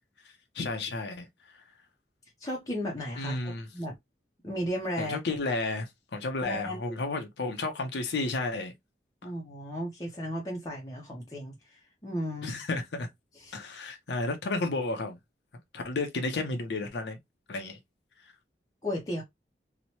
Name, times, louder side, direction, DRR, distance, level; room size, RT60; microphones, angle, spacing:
voice 1, 0.5-1.3 1.5-1.6 3.2-3.7 5.0-8.7 12.4-13.1 13.5-15.2 15.7-17.2 17.5-17.8, left 3 dB, 80° left, 0.6 m, -32 dB
voice 2, 2.4-3.9 4.4-5.2 6.4-7.0 9.2-12.6 13.4-13.6 18.8-19.2, equal, 20° left, 0.5 m, -35 dB
2.9 x 2.1 x 2.7 m
head